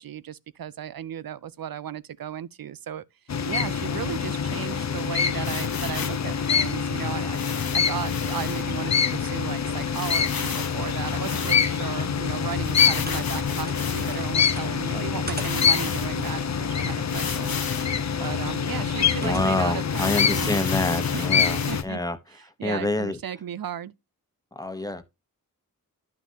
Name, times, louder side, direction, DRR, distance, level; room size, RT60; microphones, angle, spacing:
voice 1, 0.0-3.0 3.4-7.4 7.7-17.6 18.2-20.5 21.1-22.0 22.3-23.9, right 9 dB, 70° right, 0.6 m, -35 dB
sound 1, 3.3-21.8, left 7 dB, 50° left, 0.6 m, -25 dB
sound 2, 5.4-6.3 7.3-8.6 9.1-9.2 9.4-9.5 9.9-11.9 12.6-14.3 14.9-15.0 15.3-16.3 17.1-18.0 18.5-18.6 19.0-19.1 19.9-21.8, left 6 dB, 75° left, 1.2 m, -35 dB
sound 3, 13.0-16.5 18.6-19.4, right 2 dB, 25° right, 1.7 m, -42 dB
voice 2, 19.2-22.2 22.6-23.2 24.5-25.0, left 2 dB, 10° left, 1.1 m, -27 dB
11.5 x 5.8 x 2.9 m
wide cardioid pair, 70°, 36 cm